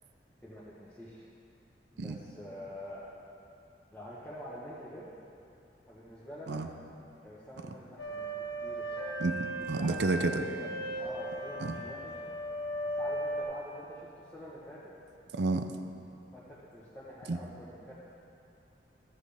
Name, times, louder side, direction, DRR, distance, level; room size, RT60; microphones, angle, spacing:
voice 1, 0.4-1.2 1.9-3.1 3.9-5.1 5.9-6.6 7.2-9.2 9.5-12.1 13.0-14.8 16.3-17.9, equal, 10° left, -10 dB, 1.1 m, -46 dB
sound 1, 8.0-13.4, right 1 dB, 85° left, 1.9 m, -37 dB
voice 2, 9.2-10.3 11.6-11.8 15.3-15.7 17.3-17.4, right 3 dB, 75° right, 7 dB, 0.5 m, -30 dB
13.0 x 7.5 x 3.4 m, 2.7 s
head